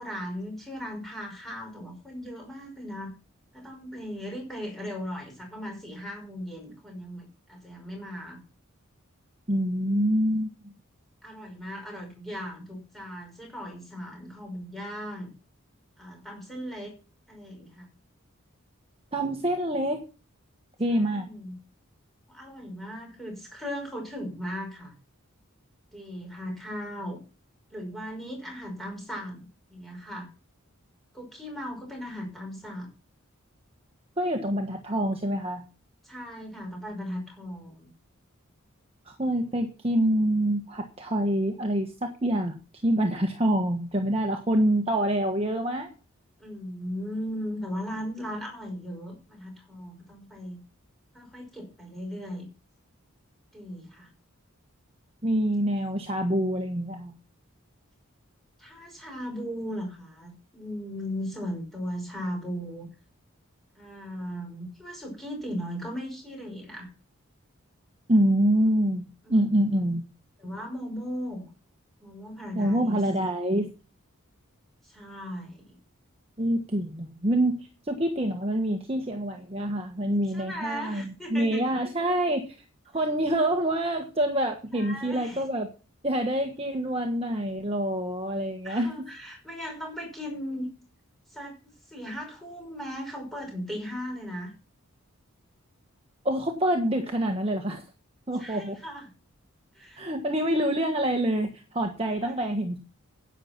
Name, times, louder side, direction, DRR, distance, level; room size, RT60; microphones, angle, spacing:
voice 1, 0.0-3.1 3.5-8.4 11.2-15.3 16.0-16.9 17.3-17.9 20.9-21.6 22.3-24.9 25.9-27.2 27.7-30.3 31.1-32.9 36.0-37.9 46.4-50.6 51.1-52.5 53.5-54.1 58.6-62.9 63.8-66.9 69.2-69.4 70.4-71.5 72.0-73.0 74.8-75.8 80.3-81.8 84.7-85.4 88.6-90.7 91.3-94.5 98.4-99.1 99.7-100.1 102.2-102.4, equal, ahead, 0 dB, 5.6 m, -37 dB
voice 2, 9.5-10.7 19.1-20.0 20.8-21.3 34.2-35.7 39.0-42.5 42.8-45.9 55.2-57.1 68.1-70.1 72.5-73.7 76.4-82.5 82.9-85.7 86.0-89.1 96.2-97.8 98.3-98.8 100.0-102.8, right 1 dB, 25° right, 3 dB, 1.4 m, -26 dB
11.0 x 8.8 x 6.0 m, 0.34 s
head